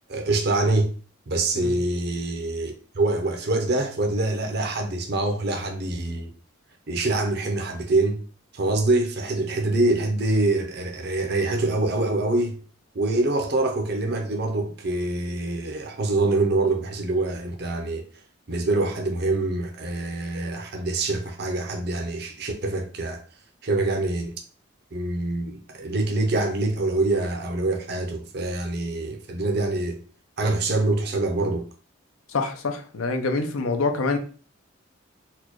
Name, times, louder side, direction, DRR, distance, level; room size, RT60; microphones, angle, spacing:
voice 1, 0.1-0.9 1.3-6.3 6.9-8.2 8.5-12.6 12.9-18.0 18.5-23.2 23.6-24.3 24.9-30.0 30.4-31.7, right 2 dB, 50° right, 0.6 m, -25 dB
voice 2, 32.3-34.2, left 3 dB, 90° left, 0.6 m, -26 dB
4.2 x 2.2 x 2.9 m
head